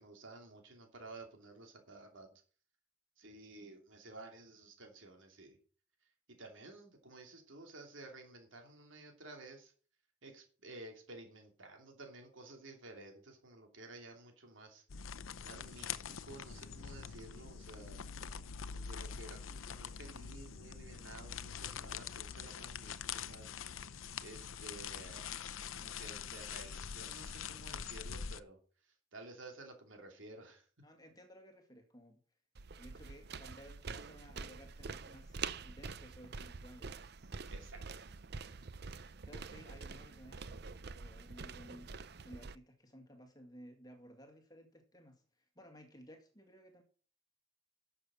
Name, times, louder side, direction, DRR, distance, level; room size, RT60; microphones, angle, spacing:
voice 1, 0.0-2.3 3.2-5.6 6.4-9.7 10.2-14.8 15.4-18.0 18.7-23.5 24.2-25.2 25.7-28.6 29.1-30.6 37.5-38.2, right 2 dB, 75° right, 3 dB, 2.9 m, -53 dB
sound 1, 14.9-28.4, left 7 dB, 85° left, 0.7 m, -44 dB
voice 2, 30.8-32.2 32.8-37.0 39.2-41.9 42.2-46.8, equal, 20° left, 5 dB, 2.0 m, -57 dB
sound 2, 32.5-42.5, right 5 dB, 55° right, 0.6 m, -46 dB
11.5 x 7.2 x 6.3 m, 0.41 s
head